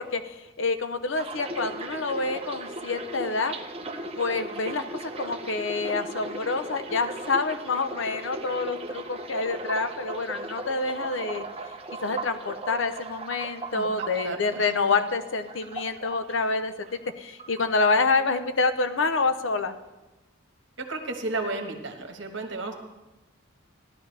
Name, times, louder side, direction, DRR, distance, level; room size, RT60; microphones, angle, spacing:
voice 1, 0.0-3.5 4.2-11.4 12.0-19.7, left 3 dB, 65° left, 10 dB, 0.7 m, -27 dB
sound 1, 1.2-17.1 17.4-18.3 18.6-18.9, right 2 dB, 30° right, 0.8 m, -37 dB
voice 2, 13.7-14.4 20.8-22.7, right 2 dB, 60° right, 4 dB, 1.5 m, -33 dB
16.5 x 11.5 x 3.4 m, 1.1 s
head